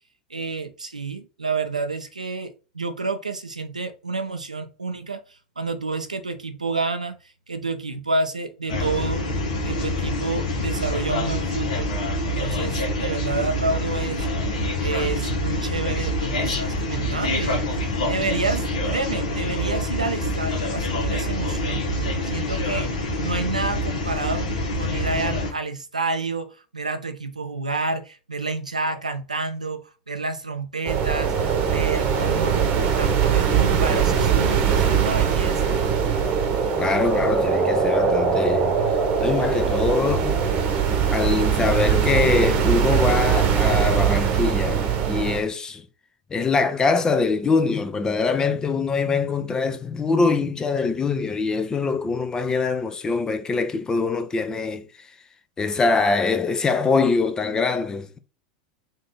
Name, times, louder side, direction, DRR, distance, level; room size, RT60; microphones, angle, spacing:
voice 1, 0.3-7.2 7.5-9.3 9.7-11.9 12.3-14.4 14.8-22.9 23.2-24.5 24.8-35.8, right 3 dB, 85° right, 0.5 m, -29 dB
sound 1, 8.7-25.5, left 1 dB, 65° left, 1.2 m, -26 dB
sound 2, 30.8-45.4, right 7 dB, 40° right, 0.9 m, -21 dB
voice 2, 36.8-38.8 39.2-40.4 41.1-45.9 46.3-55.1 55.6-58.2, left 4 dB, 20° left, 0.5 m, -23 dB
3.8 x 2.7 x 3.7 m
figure-of-eight pair, 85°, 4 cm